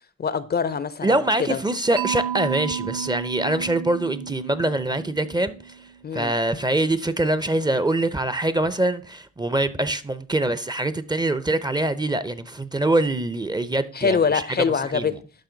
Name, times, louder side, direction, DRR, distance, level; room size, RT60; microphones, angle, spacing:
voice 1, 0.2-1.6 6.0-6.3 13.9-15.1, left 6 dB, 35° left, 0.5 m, -24 dB
voice 2, 1.0-5.8 6.1-14.4 14.9-15.1, right 1 dB, 15° right, 0.6 m, -24 dB
Mallet percussion, 2.0-6.0, right 9 dB, 75° right, 0.7 m, -32 dB
11.5 x 5.6 x 3.9 m
cardioid pair, 90°, 30 cm